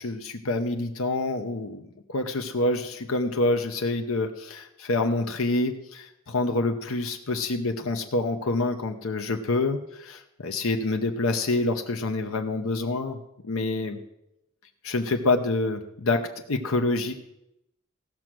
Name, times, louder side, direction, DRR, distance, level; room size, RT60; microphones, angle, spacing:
voice 1, 0.0-1.8 2.1-14.0 14.8-17.1, left 2 dB, 90° left, 5 dB, 0.9 m, -27 dB
16.5 x 6.3 x 6.1 m, 0.84 s
head